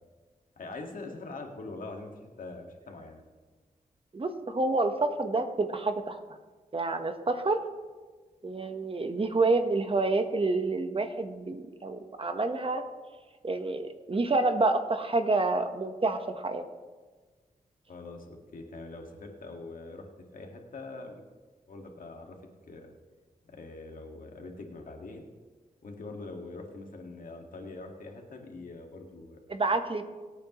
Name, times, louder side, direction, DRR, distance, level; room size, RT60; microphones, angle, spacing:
voice 1, 0.6-3.2 17.9-21.2 21.7-22.4 22.7-22.9 23.5-25.3 25.8-29.4, left 3 dB, 70° left, 2 dB, 1.9 m, -43 dB
voice 2, 4.1-6.2 6.7-7.6 8.4-12.8 13.4-16.6 29.5-30.0, right 3 dB, 40° right, 7 dB, 1.1 m, -28 dB
23.5 x 8.7 x 3.1 m, 1.4 s
cardioid pair, 70°, 14 cm